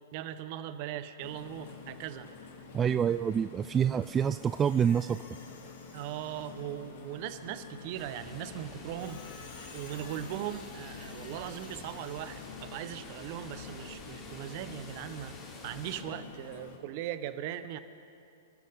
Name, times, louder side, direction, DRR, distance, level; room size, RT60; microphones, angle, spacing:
voice 1, 0.1-2.3 5.9-9.4 9.7-15.3 15.6-17.8, right 11 dB, 50° right, 11 dB, 1.1 m, -39 dB
sound 1, 1.2-16.8, left 5 dB, 65° left, 2.5 m, -48 dB
voice 2, 2.7-5.2, right 8 dB, 20° right, 12 dB, 0.3 m, -27 dB
Squeak, 4.0-6.8 9.0-12.5, left 4 dB, 80° left, 4.0 m, -54 dB
sound 2, 7.9-16.0, left 3 dB, 30° left, 3.6 m, -49 dB
28.5 x 13.5 x 3.8 m, 2.6 s
hypercardioid pair, 125°, 0 cm